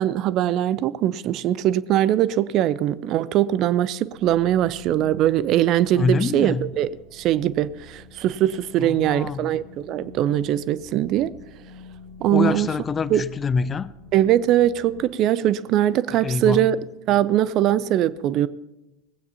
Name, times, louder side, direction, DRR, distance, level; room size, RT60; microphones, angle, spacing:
voice 1, 0.0-11.3 12.2-12.7 13.1-13.2 14.1-16.8 17.1-18.5, right 12 dB, 45° right, 0.4 m, -21 dB
sound 1, 4.1-15.1, left 3 dB, 65° right, 3.6 m, -47 dB
voice 2, 5.9-6.7 8.8-9.6 12.3-13.9 16.2-16.8, left 4 dB, 25° left, 0.5 m, -25 dB
19.0 x 16.0 x 2.9 m
figure-of-eight pair, 75°, 0 cm